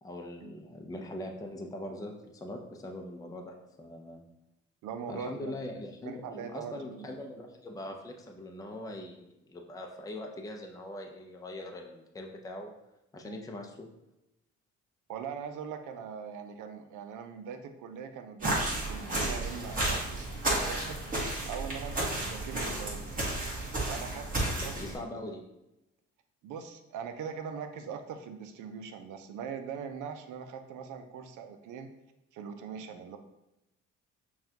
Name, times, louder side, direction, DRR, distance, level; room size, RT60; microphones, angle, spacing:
voice 1, 0.0-4.2 5.1-12.7 13.1-13.9 24.6-25.4, left 1 dB, 10° left, 2 dB, 0.5 m, -42 dB
voice 2, 4.8-5.5 6.0-7.1 13.2-13.4 15.1-21.0 21.5-23.1 23.9-25.2 26.4-31.9 32.3-33.2, right 7 dB, 80° right, 7 dB, 0.5 m, -41 dB
sound 1, 18.4-24.9, right 1 dB, 30° right, 1.4 m, -32 dB
5.6 x 2.3 x 2.8 m, 0.91 s
cardioid pair, 90°, 30 cm